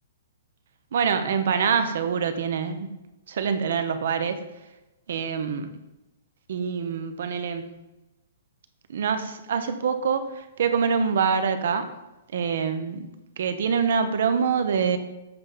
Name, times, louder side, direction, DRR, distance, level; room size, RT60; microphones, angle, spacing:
voice 1, 0.9-2.9 3.3-4.4 5.1-5.7 6.5-7.7 8.9-11.9 12.3-13.1 13.4-15.0, right 6 dB, 65° right, 9 dB, 0.8 m, -25 dB
7.9 x 3.4 x 5.6 m, 1.0 s
hypercardioid pair, 160°, 0 cm